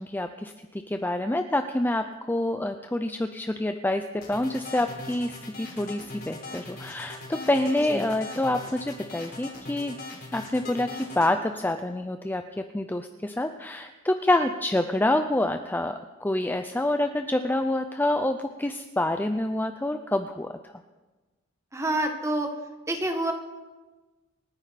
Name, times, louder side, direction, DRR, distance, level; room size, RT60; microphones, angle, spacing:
voice 1, 0.0-10.0 10.3-20.7, left 1 dB, 10° left, 7 dB, 0.5 m, -27 dB
sound 1, 4.2-11.3, left 2 dB, 50° left, 3.7 m, -40 dB
voice 2, 21.7-22.5 22.9-23.3, right 1 dB, 15° right, 4 dB, 1.6 m, -27 dB
28.0 x 9.7 x 4.2 m, 1.2 s
head